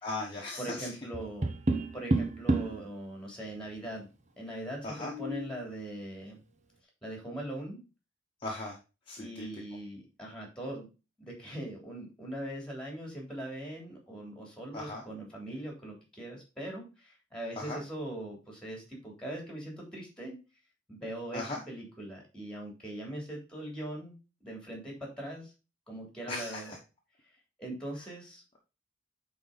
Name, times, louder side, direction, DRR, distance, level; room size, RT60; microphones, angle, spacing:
voice 1, 0.0-0.9 4.8-5.1 8.4-8.7 9.1-9.5 14.7-15.0 17.6-17.8 21.3-21.6 26.3-26.8, left 2 dB, 25° left, -2 dB, 1.3 m, -37 dB
voice 2, 0.6-1.5 1.9-4.1 4.4-6.4 7.0-7.8 9.2-10.9 11.2-20.4 20.9-24.2 24.4-25.5 25.9-26.7 27.6-28.4, right 1 dB, 5° left, 0 dB, 3.3 m, -41 dB
Tap, 1.1-2.8 4.8-5.6, right 2 dB, 40° right, 0.9 m, -30 dB
9.2 x 4.1 x 4.1 m, 0.30 s
head